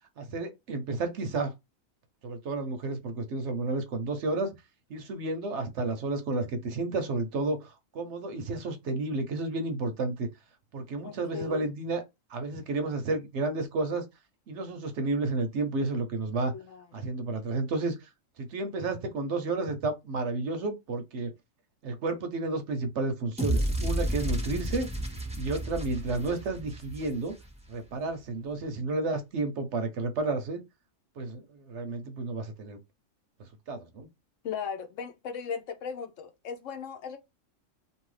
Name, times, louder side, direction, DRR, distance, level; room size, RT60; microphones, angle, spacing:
voice 1, 0.2-1.5 2.2-4.5 4.9-10.3 10.7-12.0 12.3-14.0 14.5-16.5 16.9-18.1 18.4-21.3 21.8-24.9 25.4-27.3 27.7-30.6 31.2-32.8 33.7-34.1, right 3 dB, 65° right, 0.9 m, -31 dB
voice 2, 11.0-11.8 16.5-17.1 34.4-37.2, left 6 dB, 70° left, 1.0 m, -37 dB
sound 1, 23.4-27.6, right 1 dB, 10° right, 0.4 m, -31 dB
2.7 x 2.7 x 3.1 m
omnidirectional pair, 1.4 m